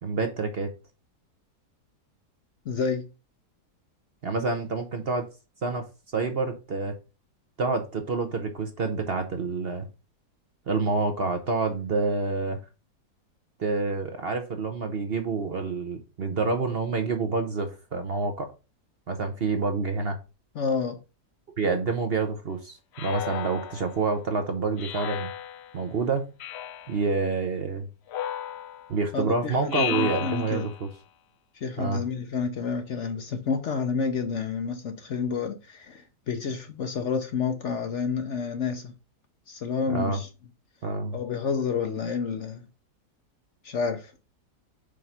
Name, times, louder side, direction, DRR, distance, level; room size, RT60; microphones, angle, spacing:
voice 1, 0.0-0.7 4.2-5.3 5.6-5.9 6.1-7.0 7.6-9.9 10.7-12.6 13.6-18.5 19.1-20.2 21.6-25.3 25.7-26.2 26.9-27.9 28.9-30.9 31.8-32.0 39.9-40.2 40.8-41.2, right 4 dB, 45° right, 0.9 m, -28 dB
voice 2, 2.6-3.0 20.5-21.0 29.1-30.7 31.5-38.9 39.5-40.3 41.1-42.7 43.6-44.1, left 5 dB, 55° left, 0.9 m, -29 dB
Speech synthesizer, 22.9-24.1 24.8-25.8 26.4-27.1 28.1-29.0 29.7-30.9, left 10 dB, 75° left, 0.6 m, -34 dB
5.1 x 4.6 x 5.6 m
omnidirectional pair, 1.7 m